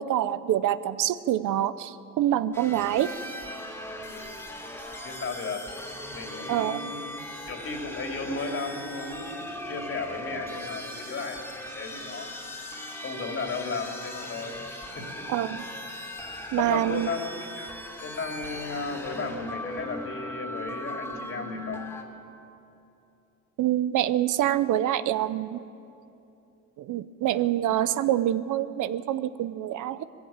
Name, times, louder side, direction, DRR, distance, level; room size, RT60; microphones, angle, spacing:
voice 1, 0.0-3.1 6.5-6.8 15.3-15.6 16.5-17.1 23.6-25.6 26.8-30.0, right 12 dB, 80° right, 14 dB, 0.7 m, -26 dB
sound 1, 2.5-22.0, left 1 dB, 5° left, 2.7 m, -39 dB
voice 2, 4.0-4.4 5.0-5.7 6.1-7.1 7.5-12.4 13.0-14.6 14.9-15.2 16.6-17.2 17.5-17.7 18.0-21.8, left 3 dB, 45° left, 3 dB, 3.0 m, -35 dB
19.0 x 15.5 x 8.9 m, 2.7 s
cardioid pair, 90°, 30 cm